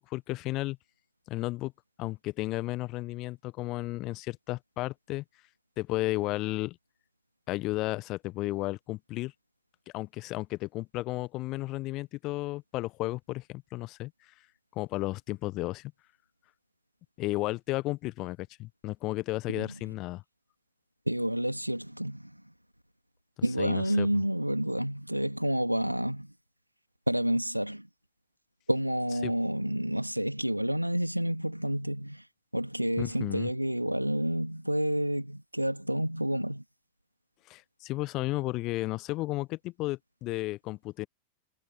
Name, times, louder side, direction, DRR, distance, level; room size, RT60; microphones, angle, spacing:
voice 1, 0.1-0.8 1.3-1.7 2.0-5.2 5.8-6.8 7.5-9.3 9.9-14.1 14.7-15.9 17.2-20.2 23.6-24.1 29.2-29.3 33.0-33.5 37.5-41.1, left 19 dB, 40° left, 1.2 m, -33 dB
voice 2, 21.1-22.3 23.4-26.3 27.1-27.9 28.7-32.2 32.5-36.6, equal, 90° right, 2.9 m, -29 dB
figure-of-eight pair, 90°, 0 cm